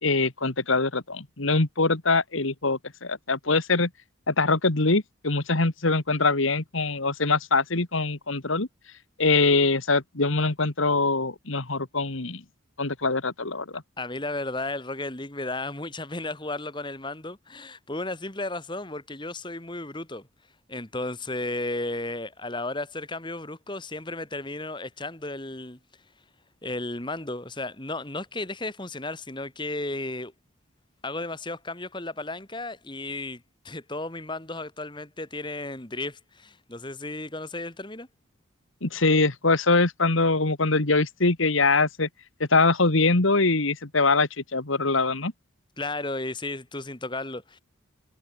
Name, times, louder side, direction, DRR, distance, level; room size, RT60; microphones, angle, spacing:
voice 1, 0.0-3.9 4.3-8.7 9.2-12.4 12.8-13.8 38.8-42.1 42.5-45.3, left 3 dB, 75° left, 2.0 m, -23 dB
voice 2, 14.0-20.3 20.7-25.8 26.6-30.3 31.0-38.1 45.8-47.6, left 2 dB, 20° left, 2.1 m, -34 dB
head